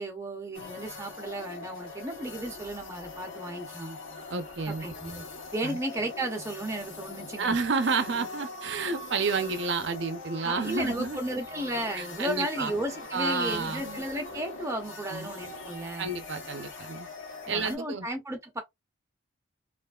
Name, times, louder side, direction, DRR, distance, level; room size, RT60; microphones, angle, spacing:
voice 1, 0.0-4.0 4.7-5.2 5.5-7.6 10.4-16.1 17.5-18.6, right 1 dB, 15° right, 0.7 m, -34 dB
sound 1, 0.5-17.8, left 3 dB, 90° left, 1.1 m, -42 dB
voice 2, 4.3-4.9 5.6-5.8 7.4-11.2 11.9-12.7 13.1-14.0 15.1-15.3 16.0-17.1 17.5-18.1, right 4 dB, 60° right, 0.6 m, -30 dB
3.2 x 2.4 x 2.3 m
head